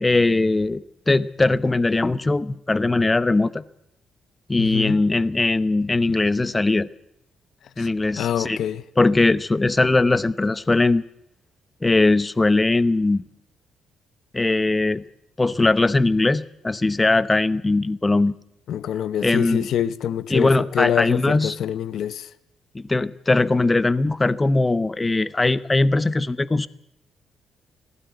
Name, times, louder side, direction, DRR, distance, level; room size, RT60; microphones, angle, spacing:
voice 1, 0.0-3.6 4.5-6.9 7.8-8.6 9.0-11.0 11.8-13.2 14.3-15.0 15.4-18.3 19.2-19.7 20.3-21.6 22.7-26.7, left 2 dB, 20° left, 0.8 m, -20 dB
voice 2, 4.6-5.0 7.8-7.9 8.2-8.8 18.7-22.3, left 10 dB, 70° left, 0.9 m, -25 dB
19.0 x 16.5 x 9.3 m
cardioid pair, 90°, 0 cm